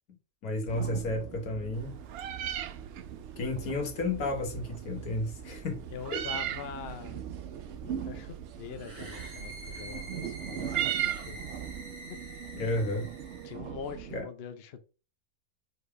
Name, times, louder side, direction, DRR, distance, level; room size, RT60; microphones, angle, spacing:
voice 1, 0.4-1.9 3.4-5.8 6.1-6.3 12.5-13.1 14.1-14.3, left 2 dB, 85° left, 1.9 m, -32 dB
sound 1, 0.7-14.2, right 9 dB, 60° right, 1.0 m, -42 dB
Meow, 1.7-11.8, right 11 dB, 90° right, 1.1 m, -38 dB
voice 2, 5.5-7.2 7.8-11.4 13.4-14.8, left 6 dB, 50° left, 0.9 m, -43 dB
sound 2, 8.7-13.6, right 1 dB, 35° right, 2.2 m, -46 dB
4.9 x 4.3 x 4.8 m
omnidirectional pair, 1.5 m